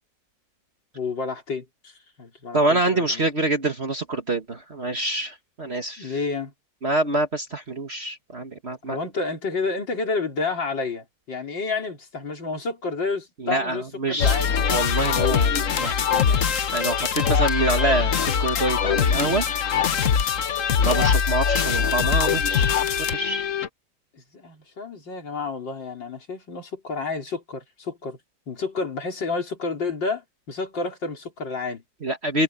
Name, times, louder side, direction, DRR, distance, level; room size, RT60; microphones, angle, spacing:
voice 1, 0.9-3.2 6.0-6.5 8.9-14.5 24.1-28.2 28.5-31.8, left 4 dB, 85° left, 4.5 m, -30 dB
voice 2, 2.5-6.1 6.8-9.0 13.4-16.4 16.7-19.5 20.8-22.7 23.0-23.4 32.0-32.4, right 2 dB, 35° right, 1.8 m, -26 dB
sound 1, 14.2-23.7, left 7 dB, 50° left, 1.3 m, -22 dB
omnidirectional pair, 1.9 m